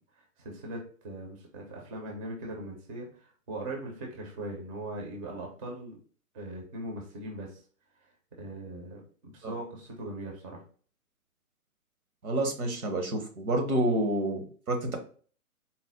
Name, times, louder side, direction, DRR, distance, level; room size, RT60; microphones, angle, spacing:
voice 1, 0.4-6.0 6.3-7.6 8.3-10.6, right 1 dB, 25° right, 0 dB, 0.6 m, -40 dB
voice 2, 12.2-15.0, right 1 dB, 70° right, 4 dB, 1.1 m, -29 dB
4.2 x 2.0 x 3.5 m, 0.42 s
figure-of-eight pair, 130°, 44 cm